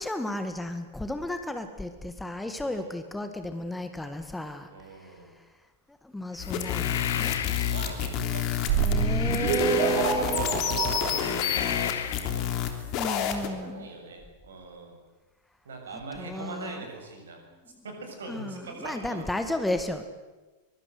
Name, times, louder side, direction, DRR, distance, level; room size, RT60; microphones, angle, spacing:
voice 1, 0.0-5.2 6.0-7.4 8.8-10.5 12.8-13.9 16.2-16.8 17.7-17.8 18.3-20.1, left 2 dB, 5° left, 8 dB, 1.9 m, -33 dB
voice 2, 2.6-3.0 4.7-5.3 7.7-8.8 9.4-9.5 9.8-12.8 13.1-15.0 15.6-17.4 17.8-19.2, right 3 dB, 65° right, 3 dB, 7.3 m, -42 dB
sound 1, 6.4-7.9 8.7-10.5 11.0-12.3, left 9 dB, 60° left, 1.6 m, -34 dB
sound 2, 6.4-13.5, left 9 dB, 40° left, 3.2 m, -29 dB
sound 3, 8.7-11.3 11.6-11.7, right 8 dB, 45° right, 2.7 m, -26 dB
23.5 x 23.5 x 8.0 m, 1.2 s
figure-of-eight pair, 90°, 0 cm